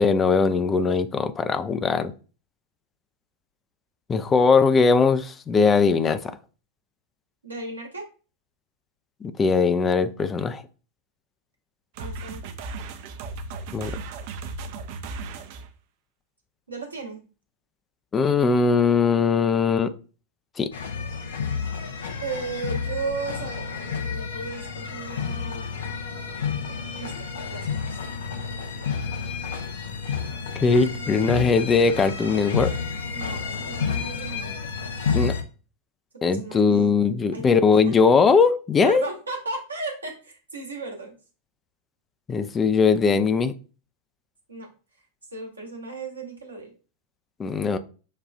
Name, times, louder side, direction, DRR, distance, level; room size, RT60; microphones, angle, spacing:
voice 1, 0.0-2.1 4.1-6.3 9.2-10.6 13.7-14.0 18.1-19.9 20.6-20.7 30.6-32.7 35.1-35.3 36.2-39.0 42.3-43.5 47.4-47.8, left 5 dB, 20° left, 0.4 m, -20 dB
voice 2, 7.4-8.1 12.0-12.4 16.7-17.2 22.2-25.6 26.7-27.2 27.5-28.0 33.1-34.6 36.2-36.9 37.3-38.0 38.8-41.1 44.5-44.7 45.3-46.7, right 3 dB, 75° right, 1.1 m, -35 dB
sound 1, 12.0-15.7, right 3 dB, 50° right, 0.5 m, -36 dB
sound 2, 20.7-35.4, left 6 dB, 65° left, 0.6 m, -30 dB
6.4 x 2.3 x 2.4 m
figure-of-eight pair, 90°, 0 cm